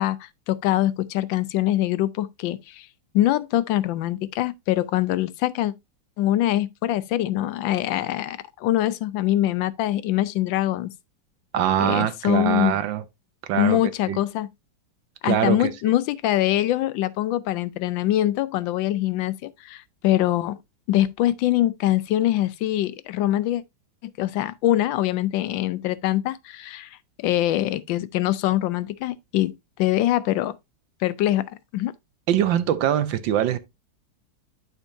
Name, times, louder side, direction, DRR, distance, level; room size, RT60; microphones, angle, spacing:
voice 1, 0.0-2.9 3.1-5.7 6.2-10.9 11.8-12.8 13.5-14.5 15.2-20.6 20.9-23.6 24.2-27.0 27.2-30.6 31.0-31.9, left 14 dB, 80° left, 1.3 m, -23 dB
voice 2, 11.5-13.0 13.5-13.8 14.1-14.2 15.2-15.7 32.3-33.6, right 10 dB, 75° right, 1.5 m, -22 dB
11.5 x 4.4 x 2.6 m
omnidirectional pair, 2.1 m